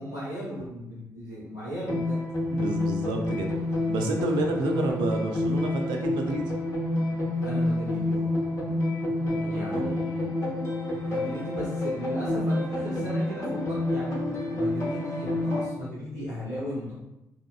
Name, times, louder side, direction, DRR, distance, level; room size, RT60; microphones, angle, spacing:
voice 1, 0.0-2.2 7.4-8.3 9.5-10.3 11.0-14.2 14.5-16.9, equal, 90° left, -9 dB, 0.7 m, -36 dB
sound 1, 1.9-15.6, left 1 dB, 30° left, 0.8 m, -28 dB
voice 2, 2.5-3.5 3.9-6.4 8.7-8.9 9.2-10.0, right 2 dB, 55° right, 2 dB, 0.4 m, -30 dB
2.8 x 2.1 x 2.4 m, 0.91 s
figure-of-eight pair, 40°, 9 cm